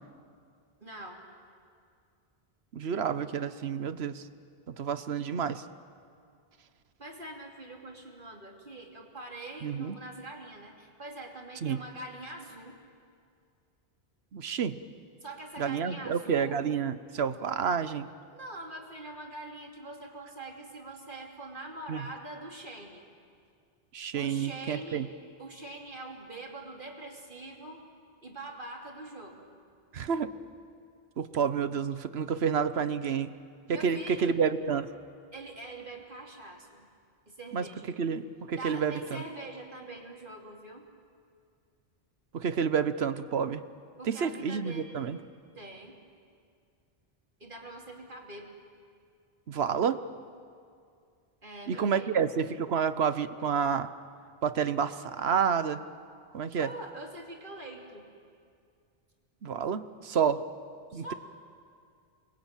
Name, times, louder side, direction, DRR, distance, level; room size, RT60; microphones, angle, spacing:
voice 1, 0.8-1.2 7.0-12.8 15.2-16.6 18.3-23.0 24.1-25.0 25.4-27.8 28.2-29.5 33.7-34.3 35.3-36.9 37.3-37.9 38.5-40.9 44.0-44.9 45.5-46.0 47.4-48.5 51.4-52.2 56.5-58.1 60.9-61.1, right 2 dB, 55° right, 0 dB, 3.2 m, -44 dB
voice 2, 2.7-4.2 4.7-5.6 9.6-10.0 11.6-11.8 14.3-14.8 15.6-18.1 21.9-22.1 23.9-25.1 29.9-30.3 31.2-33.3 33.7-34.9 37.5-39.2 42.3-43.6 44.0-45.2 49.5-50.0 51.7-53.9 54.4-55.8 56.3-56.7 59.4-60.4 60.9-61.1, right 7 dB, 85° right, 12 dB, 1.2 m, -29 dB
28.0 x 21.5 x 9.0 m, 2.3 s
omnidirectional pair, 1.0 m